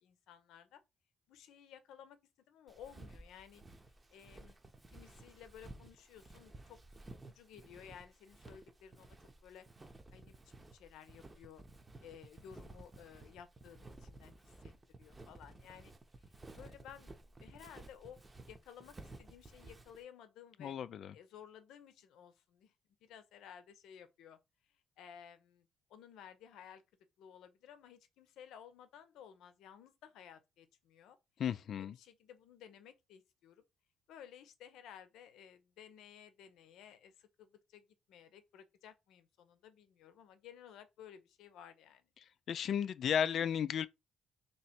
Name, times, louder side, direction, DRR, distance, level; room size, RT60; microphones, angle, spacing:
voice 1, 0.0-0.8 1.3-2.2 2.5-3.6 4.1-4.6 4.9-6.8 7.3-9.2 9.4-9.7 10.1-11.6 12.0-14.7 15.0-15.9 16.5-18.2 18.5-20.7 21.1-22.7 23.0-24.4 25.0-26.8 27.2-31.2 31.8-33.6 34.1-42.1, left 9 dB, 85° left, 0.7 m, -56 dB
Walk footsteps, 2.7-20.0, right 2 dB, 20° right, 0.8 m, -55 dB
voice 2, 20.6-21.1 31.4-32.0 42.5-43.9, left 8 dB, 60° left, 0.3 m, -34 dB
3.1 x 3.0 x 4.3 m
cardioid pair, 90°, 0 cm